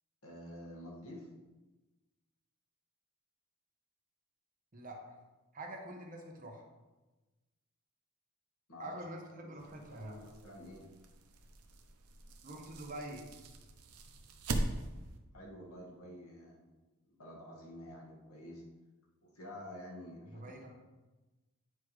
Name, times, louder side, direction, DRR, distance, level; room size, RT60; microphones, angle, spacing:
voice 1, 0.2-1.3 8.7-9.0 9.4-10.9 15.3-16.7 17.1-18.6 19.2-20.7, left 1 dB, 75° left, -3 dB, 1.9 m, -49 dB
voice 2, 4.7-5.1 5.5-6.7 8.8-10.2 12.4-13.3 20.2-20.7, right 1 dB, 35° right, 1 dB, 1.0 m, -46 dB
sound 1, 9.6-15.2, right 2 dB, 75° right, 0.8 m, -42 dB
9.5 x 4.8 x 3.2 m, 1.1 s
head